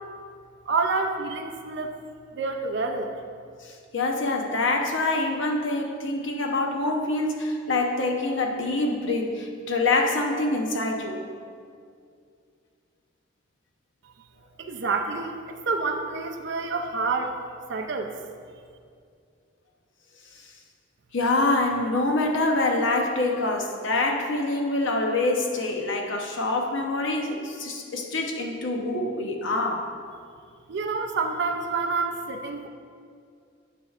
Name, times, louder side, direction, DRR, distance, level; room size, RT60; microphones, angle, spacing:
voice 1, 0.7-2.0 2.3-3.1 14.6-17.4 17.7-18.2 30.7-32.7, right 4 dB, 55° right, 3 dB, 0.4 m, -28 dB
voice 2, 3.6-11.2 21.1-29.9, left 2 dB, 65° left, 2 dB, 0.8 m, -25 dB
9.3 x 6.9 x 2.4 m, 2.2 s
head